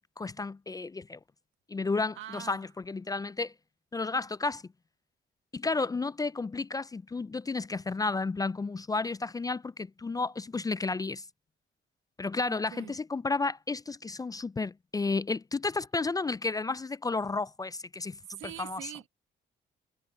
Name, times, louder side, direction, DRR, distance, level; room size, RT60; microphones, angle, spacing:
voice 1, 0.2-1.2 1.7-3.5 3.9-4.6 5.5-11.2 12.2-18.9, left 3 dB, 20° left, 0.3 m, -32 dB
voice 2, 2.1-2.7 12.4-13.0 18.2-19.1, right 12 dB, 85° right, 1.7 m, -44 dB
cardioid pair, 90°, 20 cm